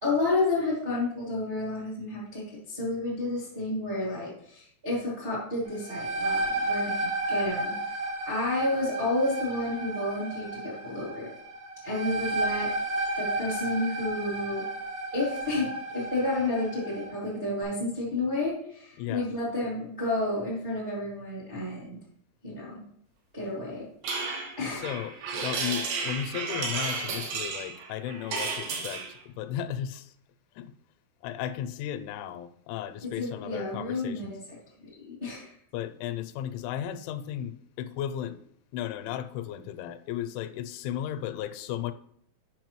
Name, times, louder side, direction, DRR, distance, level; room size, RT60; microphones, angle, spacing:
voice 1, 0.0-11.3 11.8-12.7 13.2-14.6 15.1-22.0 22.4-22.8 23.3-23.9 24.6-24.9 33.0-34.4 35.1-35.5, left 2 dB, 40° right, 0.7 m, -31 dB
sound 1, 5.7-17.1, right 1 dB, 60° right, 1.8 m, -32 dB
voice 2, 19.0-19.3 24.8-30.1 30.6-30.7 31.2-34.3 35.7-38.4 38.7-41.9, left 10 dB, 85° left, 2.9 m, -35 dB
sound 2, 24.0-29.1, right 4 dB, 75° right, 3.1 m, -33 dB
8.4 x 5.9 x 3.0 m
omnidirectional pair, 5.4 m